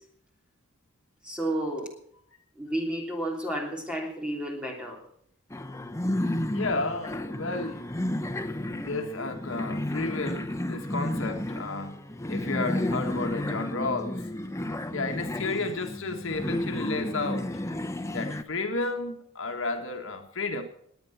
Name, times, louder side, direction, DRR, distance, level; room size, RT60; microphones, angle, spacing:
voice 1, 1.2-1.9 2.5-5.0, right 1 dB, 5° right, 1 dB, 3.1 m, -31 dB
sound 1, 5.5-18.4, left 1 dB, 15° left, 0.7 m, -32 dB
voice 2, 6.5-7.9 8.7-12.0 12.3-14.3 14.9-17.6 18.1-20.6, left 3 dB, 65° left, 5 dB, 1.6 m, -32 dB
20.0 x 9.2 x 5.8 m, 0.69 s
head